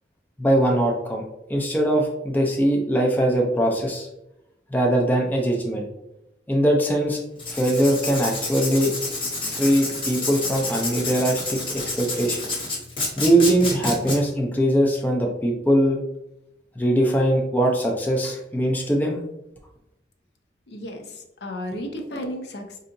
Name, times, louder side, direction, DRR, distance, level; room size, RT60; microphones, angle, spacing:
voice 1, 0.4-1.2 1.5-4.1 4.7-5.9 6.5-7.2 7.5-8.9 9.4-12.4 13.2-16.0 16.8-19.2, right 1 dB, 10° left, 0 dB, 0.4 m, -21 dB
Writing, 7.4-14.2, left 2 dB, 30° left, 0.8 m, -29 dB
voice 2, 20.7-22.8, equal, 65° left, 3 dB, 0.6 m, -33 dB
4.7 x 2.7 x 2.5 m, 0.88 s
head